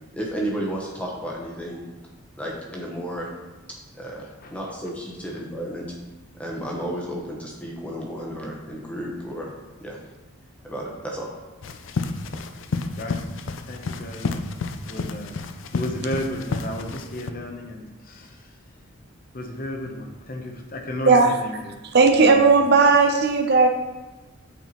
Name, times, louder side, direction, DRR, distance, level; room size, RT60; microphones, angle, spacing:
voice 1, 0.1-1.8 2.4-3.3 3.7-5.9 6.4-9.5 9.8-10.0 10.6-11.3, right 1 dB, 5° left, -2 dB, 0.9 m, -32 dB
sound 1, 11.6-17.3, left 4 dB, 65° left, 0.4 m, -30 dB
voice 2, 13.7-14.4 14.7-15.3 15.7-18.5 19.3-21.8 22.2-23.0, left 1 dB, 45° left, 3 dB, 0.7 m, -33 dB
voice 3, 21.9-23.7, right 4 dB, 50° right, 4 dB, 0.5 m, -16 dB
8.4 x 4.4 x 3.0 m, 1.1 s
head